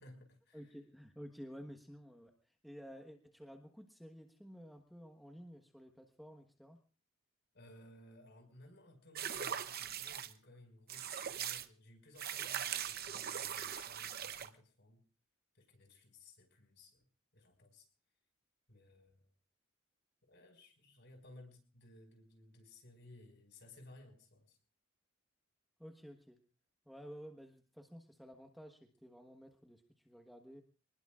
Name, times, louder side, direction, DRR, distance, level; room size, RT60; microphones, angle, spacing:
voice 1, 0.0-0.8 7.5-15.0 15.5-17.0 17.3-17.9 18.7-19.3 20.3-24.6, left 1 dB, 55° left, 4 dB, 5.6 m, -59 dB
voice 2, 0.5-6.8 25.8-26.4 26.8-30.6, equal, ahead, 3 dB, 1.3 m, -53 dB
sound 1, 9.1-10.3 10.9-11.7 12.2-14.5, right 9 dB, 45° right, 0.8 m, -40 dB
27.0 x 20.0 x 2.5 m, 0.39 s
head